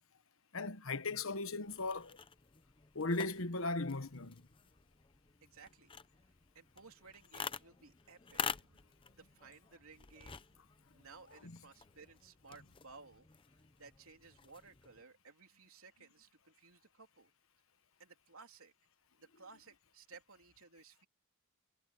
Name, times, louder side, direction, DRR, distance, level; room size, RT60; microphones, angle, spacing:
voice 1, 0.5-2.2 2.9-4.4 11.4-11.5, left 3 dB, 60° left, 1.2 m, -37 dB
sound 1, 1.6-15.0, left 6 dB, 25° left, 0.7 m, -48 dB
voice 2, 5.4-5.9 6.5-10.4 10.9-13.3 13.8-17.3 18.0-18.7 19.2-21.1, right 4 dB, 70° right, 3.4 m, -58 dB
head